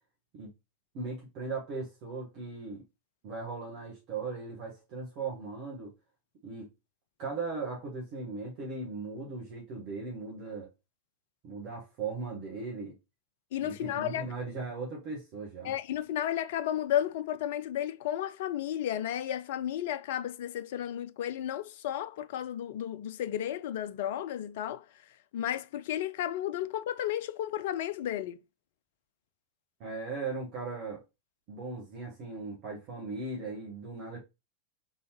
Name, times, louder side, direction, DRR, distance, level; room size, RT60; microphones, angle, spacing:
voice 1, 0.9-2.8 3.2-5.9 6.4-6.7 7.2-10.7 11.4-13.0 13.6-15.7 29.8-31.0 31.5-34.2, right 4 dB, 40° right, 1.8 m, -38 dB
voice 2, 13.5-14.3 15.6-24.8 25.3-28.4, left 11 dB, 55° left, 0.4 m, -33 dB
3.9 x 3.8 x 3.0 m
figure-of-eight pair, 90°, 0 cm